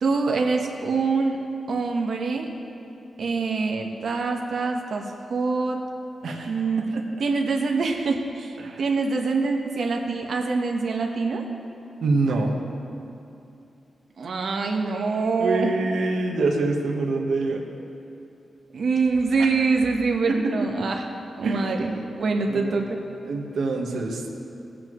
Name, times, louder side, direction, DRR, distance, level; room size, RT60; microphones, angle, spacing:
voice 1, 0.0-1.4 1.7-2.5 3.2-5.0 5.3-5.8 6.5-6.8 7.2-11.4 14.2-15.7 18.7-21.0 21.4-23.0, right 4 dB, 60° right, 2 dB, 1.1 m, -25 dB
voice 2, 6.2-6.6 6.9-7.0 8.6-8.9 12.0-12.5 15.4-17.6 19.4-19.5 20.3-20.7 21.4-21.8 22.5-22.9 23.2-24.3, right 3 dB, 80° right, 1 dB, 1.2 m, -26 dB
18.0 x 8.4 x 3.1 m, 2.7 s
wide cardioid pair, 170°, 0 cm